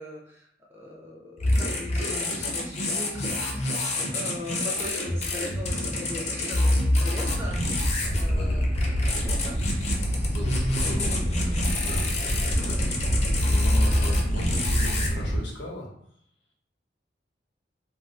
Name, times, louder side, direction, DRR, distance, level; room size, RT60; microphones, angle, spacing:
voice 1, 0.0-8.7 9.2-9.7, left 1 dB, 15° right, -2 dB, 0.4 m, -40 dB
sound 1, 1.4-15.1, left 1 dB, 40° left, 0.5 m, -27 dB
Animal, 7.2-15.4, equal, 70° right, 0.9 m, -27 dB
voice 2, 8.3-9.0 10.2-15.9, equal, 70° left, -1 dB, 0.8 m, -38 dB
2.5 x 2.3 x 3.5 m, 0.71 s
head